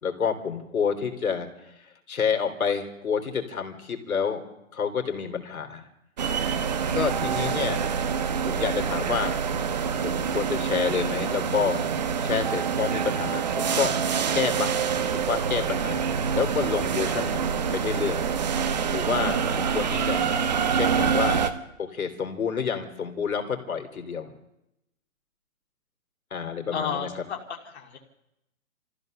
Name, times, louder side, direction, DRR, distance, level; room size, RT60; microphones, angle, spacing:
voice 1, 0.0-4.4 4.7-5.9 6.9-7.8 8.4-9.4 10.0-11.8 12.2-13.9 14.3-14.7 15.1-17.5 17.7-18.2 18.9-20.3 20.7-21.4 21.8-24.3 26.3-27.2, left 6 dB, 85° left, 4 dB, 3.7 m, -29 dB
sound 1, 6.2-21.5, right 6 dB, 30° right, 1.1 m, -26 dB
voice 2, 26.7-27.4 27.6-28.0, left 6 dB, 50° left, 0 dB, 2.4 m, -31 dB
26.5 x 14.5 x 6.7 m, 0.88 s
hypercardioid pair, 170°, 41 cm